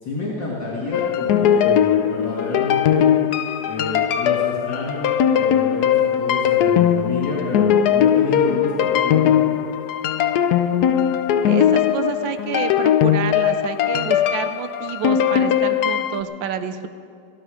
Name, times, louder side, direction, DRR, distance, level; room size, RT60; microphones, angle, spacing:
voice 1, 0.0-3.1 3.7-9.4, left 2 dB, 55° left, -6 dB, 2.9 m, -28 dB
sound 1, 0.9-16.2, left 9 dB, 85° left, 0.8 m, -19 dB
voice 2, 11.4-16.9, right 8 dB, 70° right, 10 dB, 1.2 m, -28 dB
16.5 x 16.0 x 5.0 m, 2.3 s
omnidirectional pair, 2.4 m